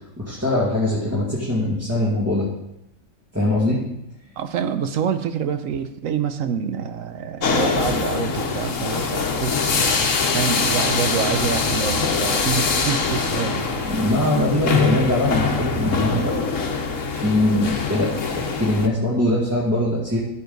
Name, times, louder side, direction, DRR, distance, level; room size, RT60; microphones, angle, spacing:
voice 1, 0.2-2.5 3.3-3.8 13.9-16.4 16.9-20.2, left 1 dB, 10° right, -8 dB, 2.0 m, -22 dB
voice 2, 4.4-13.7, right 7 dB, 75° right, 9 dB, 1.1 m, -27 dB
sound 1, 7.4-18.9, left 4 dB, 70° left, 1.4 m, -23 dB
14.5 x 7.3 x 4.0 m, 0.83 s
omnidirectional pair, 1.4 m